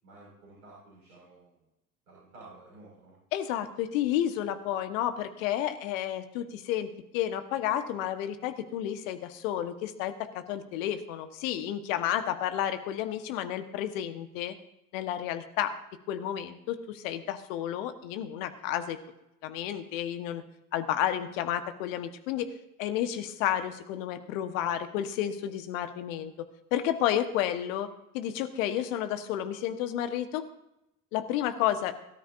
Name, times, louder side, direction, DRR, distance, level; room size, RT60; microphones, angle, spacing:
voice 1, 0.0-1.7 2.1-3.1 24.6-24.7, right 2 dB, 75° right, -5 dB, 6.0 m, -52 dB
voice 2, 3.3-14.5 14.9-15.7 16.1-19.0 19.4-20.4 20.7-22.5 22.8-26.3 26.7-27.9 28.1-30.5 31.1-31.9, left 11 dB, 60° left, 9 dB, 1.5 m, -31 dB
22.0 x 13.0 x 2.7 m, 0.86 s
figure-of-eight pair, 70°, 45 cm